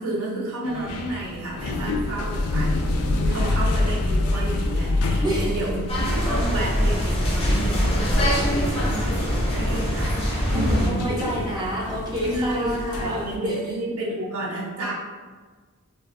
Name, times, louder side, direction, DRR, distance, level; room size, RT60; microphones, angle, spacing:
voice 1, 0.0-10.2 10.5-11.0 12.2-14.9, right 1 dB, 80° right, -6 dB, 0.7 m, -31 dB
sound 1, 0.6-13.4, left 2 dB, 85° left, 0.3 m, -27 dB
voice 2, 5.2-5.6 9.6-9.7 10.2-13.7, right 1 dB, 20° right, -7 dB, 0.6 m, -29 dB
sound 2, 5.9-10.9, equal, 25° left, 0.5 m, -23 dB
2.2 x 2.2 x 2.4 m, 1.4 s
head